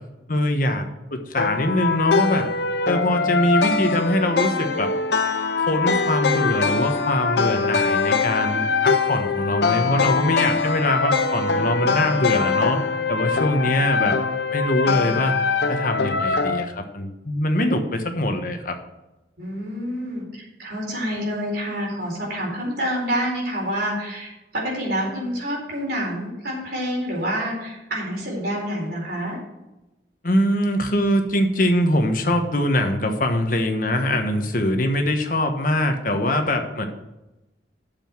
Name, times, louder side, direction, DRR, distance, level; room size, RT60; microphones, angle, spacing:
voice 1, 0.3-0.8 1.1-2.5 2.8-4.9 5.7-12.8 13.1-14.2 14.5-15.4 15.7-18.7 30.2-36.9, left 1 dB, 50° left, 5 dB, 1.3 m, -23 dB
sound 1, 1.3-16.6, left 4 dB, 65° left, 0.7 m, -22 dB
voice 2, 19.4-29.4, equal, 60° right, -3 dB, 4.3 m, -28 dB
8.9 x 7.0 x 6.1 m, 0.98 s
head